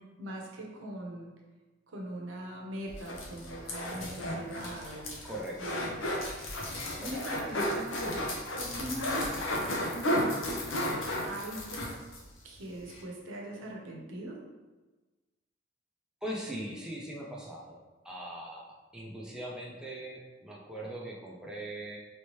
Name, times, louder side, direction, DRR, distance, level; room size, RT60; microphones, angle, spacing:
voice 1, 0.2-1.3 1.9-5.3 5.5-6.1 7.0-8.2 8.6-9.3 9.6-10.6 11.2-11.9 12.4-14.4, right 1 dB, 75° right, -1 dB, 0.7 m, -41 dB
Squeaky squishy sound, 2.9-12.2 12.6-12.7 12.9-13.0, left 1 dB, 75° left, 0.7 m, -33 dB
voice 2, 5.2-5.8 7.0-7.2 8.8-8.9 16.2-17.8 18.0-22.0, right 1 dB, 5° right, -4 dB, 0.5 m, -40 dB
3.2 x 2.9 x 3.1 m, 1.2 s
head